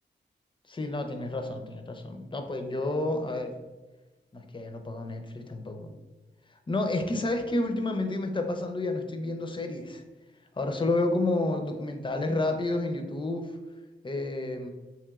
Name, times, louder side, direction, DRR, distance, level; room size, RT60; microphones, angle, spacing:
voice 1, 0.7-3.5 4.3-5.9 6.7-10.0 10.6-13.5 14.0-14.7, left 2 dB, 25° left, 5 dB, 0.4 m, -30 dB
3.0 x 3.0 x 2.3 m, 1.2 s
cardioid pair, 65°, 20 cm